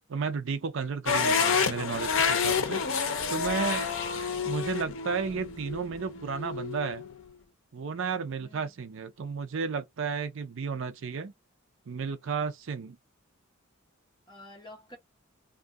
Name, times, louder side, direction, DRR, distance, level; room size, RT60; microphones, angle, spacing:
voice 1, 0.1-2.8 3.3-3.9 4.4-7.0 7.7-11.3 11.9-13.0, right 5 dB, 65° right, 0.5 m, -33 dB
sound 1, 1.1-7.1, left 6 dB, 65° left, 0.6 m, -29 dB
voice 2, 2.4-3.6 4.1-4.5 8.4-8.7 14.3-15.0, equal, 20° left, 1.3 m, -51 dB
2.5 x 2.4 x 3.5 m
head